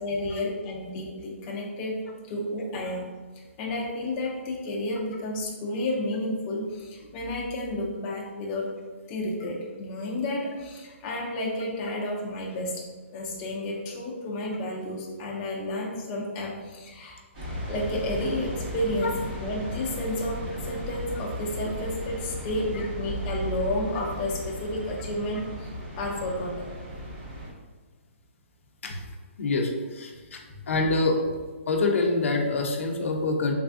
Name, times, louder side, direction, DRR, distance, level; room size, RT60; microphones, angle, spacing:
voice 1, 0.0-3.1 3.6-8.7 9.1-12.9 13.1-17.2 17.7-25.7 26.0-26.7, left 1 dB, 20° left, -2 dB, 0.4 m, -31 dB
sound 1, 17.3-27.5, equal, 35° right, 1.4 m, -36 dB
voice 2, 29.4-30.4 30.7-31.2 31.7-33.5, left 3 dB, 70° left, 2 dB, 0.6 m, -26 dB
3.5 x 3.2 x 2.5 m, 1.4 s
hypercardioid pair, 165°, 7 cm